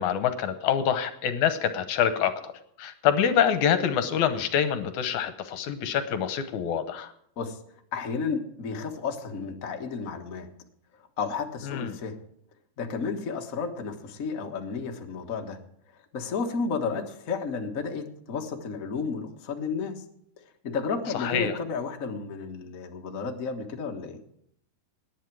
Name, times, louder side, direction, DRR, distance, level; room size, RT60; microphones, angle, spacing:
voice 1, 0.0-2.5 2.8-7.1 11.7-11.9 21.1-21.5, left 8 dB, 70° left, 10 dB, 2.1 m, -26 dB
voice 2, 7.9-10.5 10.9-12.2 12.8-15.6 16.1-20.0 20.4-24.2, left 5 dB, 55° left, 2 dB, 0.9 m, -32 dB
18.5 x 10.0 x 4.7 m, 0.71 s
omnidirectional pair, 3.9 m